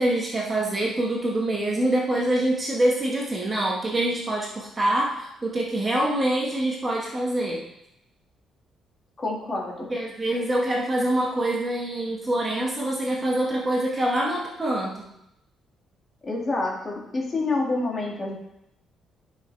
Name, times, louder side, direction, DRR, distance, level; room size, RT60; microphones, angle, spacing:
voice 1, 0.0-7.6 9.9-15.1, right 1 dB, 20° right, -2 dB, 1.1 m, -25 dB
voice 2, 9.2-9.9 16.2-18.3, left 2 dB, 25° left, -2 dB, 1.8 m, -28 dB
11.5 x 5.9 x 3.2 m, 0.82 s
cardioid pair, 165°, 0 cm